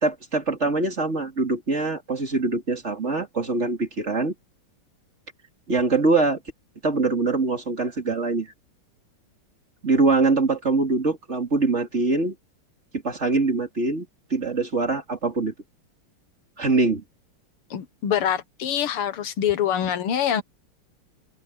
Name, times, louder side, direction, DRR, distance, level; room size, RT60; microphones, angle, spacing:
voice 1, 0.0-4.3 5.7-6.4 6.8-8.5 9.8-12.3 13.0-15.5 16.6-17.0, right 3 dB, 30° right, 3.1 m, -23 dB
voice 2, 17.7-20.4, left 9 dB, 85° left, 2.2 m, -25 dB
omnidirectional pair, 2.4 m